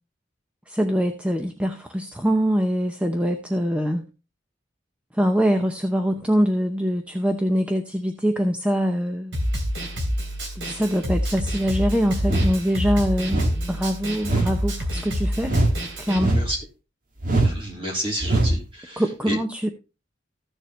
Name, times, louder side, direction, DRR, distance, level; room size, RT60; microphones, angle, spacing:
voice 1, 0.7-4.0 5.1-9.4 10.6-15.5 16.0-16.4 19.0-19.7, equal, 5° right, 6 dB, 0.7 m, -23 dB
Snare drum, 9.3-16.2, equal, 80° right, 3.1 m, -27 dB
sound 1, 12.2-12.6 13.3-13.6 14.2-14.6 15.4-15.8 16.1-16.6 17.2-17.6 18.2-18.6, right 2 dB, 50° right, 1.9 m, -21 dB
voice 2, 16.2-16.6 17.4-19.4, equal, 30° right, -1 dB, 3.5 m, -30 dB
14.5 x 6.9 x 3.1 m, 0.30 s
head